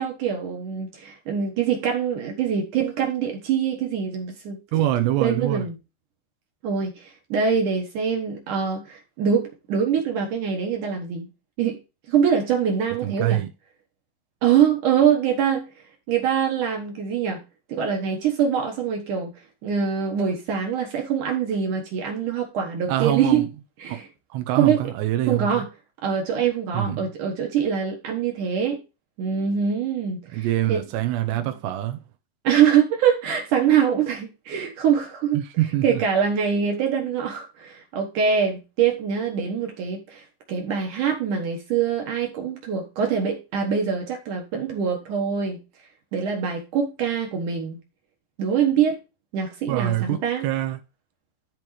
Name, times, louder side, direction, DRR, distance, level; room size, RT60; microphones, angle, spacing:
voice 1, 0.0-4.6 5.2-5.7 6.6-11.3 11.6-11.8 12.1-13.4 14.4-15.7 16.1-17.4 17.7-19.3 19.6-23.5 23.8-24.1 24.6-24.9 25.3-25.7 26.0-28.8 29.2-30.8 32.4-35.4 35.8-45.6 46.1-47.8 48.4-49.0 49.3-50.5, right 7 dB, 65° right, 2.3 m, -24 dB
voice 2, 4.7-5.7 13.0-13.5 22.9-23.5 23.9-24.0 24.3-25.6 26.7-27.1 30.3-32.0 35.3-36.0 49.7-50.8, right 13 dB, 85° right, 3.0 m, -24 dB
13.0 x 4.6 x 3.2 m
omnidirectional pair, 4.8 m